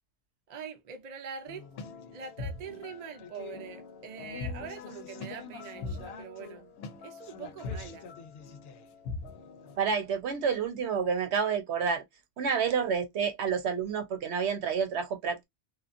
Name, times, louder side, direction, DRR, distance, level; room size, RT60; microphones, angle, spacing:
voice 1, 0.5-1.6 2.1-8.1, right 6 dB, 50° right, 0.6 m, -43 dB
sound 1, 1.5-9.8, left 4 dB, 70° left, 0.8 m, -42 dB
voice 2, 9.8-12.0 12.4-15.4, right 6 dB, 85° right, 1.0 m, -29 dB
2.9 x 2.3 x 2.5 m
omnidirectional pair, 1.1 m